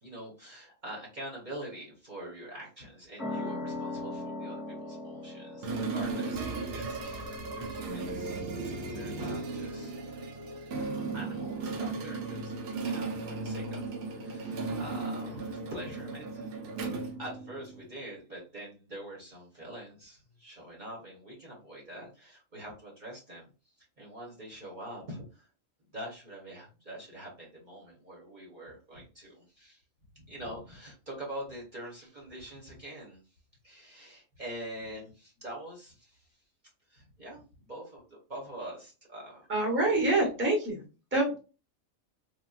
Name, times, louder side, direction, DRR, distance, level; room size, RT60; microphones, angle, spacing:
voice 1, 0.0-9.9 10.5-10.9 11.1-13.8 14.2-16.5 17.2-25.5 25.9-29.8 30.1-33.3 33.6-36.4 36.9-39.5 39.8-40.3, right 1 dB, 40° right, -4 dB, 1.0 m, -45 dB
sound 1, 3.2-10.4, left 2 dB, 15° left, 1.1 m, -41 dB
sound 2, 5.6-17.9, right 3 dB, 80° right, 1.0 m, -36 dB
voice 2, 39.5-40.8 41.1-41.4, right 2 dB, 10° right, -1 dB, 0.8 m, -26 dB
3.4 x 2.2 x 2.3 m, 0.33 s
omnidirectional pair, 1.4 m